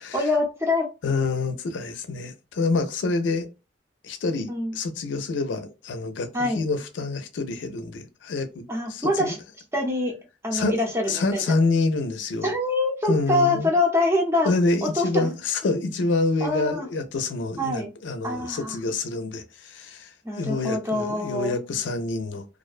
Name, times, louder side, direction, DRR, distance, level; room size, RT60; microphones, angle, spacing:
voice 1, 0.1-0.9 4.5-4.8 6.3-6.6 8.7-9.4 9.7-10.1 10.4-11.6 12.4-14.5 14.8-15.3 16.4-16.9 17.6-17.9 18.2-18.7 20.2-21.5, left 2 dB, 15° right, 0.6 m, -25 dB
voice 2, 1.0-3.5 4.0-9.3 10.5-10.8 11.1-12.5 13.1-13.7 14.4-22.4, left 3 dB, 85° left, 0.4 m, -27 dB
2.4 x 2.1 x 2.4 m
head